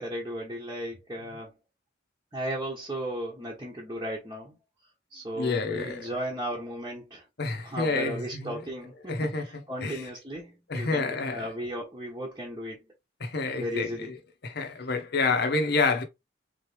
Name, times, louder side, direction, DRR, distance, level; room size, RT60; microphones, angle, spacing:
voice 1, 0.0-1.5 2.3-4.6 5.1-7.2 7.6-12.8 13.6-14.1, equal, 20° right, 1.0 m, -35 dB
voice 2, 5.4-6.1 7.4-8.6 9.1-10.1 10.7-11.5 13.2-13.9 14.4-16.0, left 3 dB, 60° left, 0.8 m, -28 dB
4.1 x 3.1 x 3.2 m
head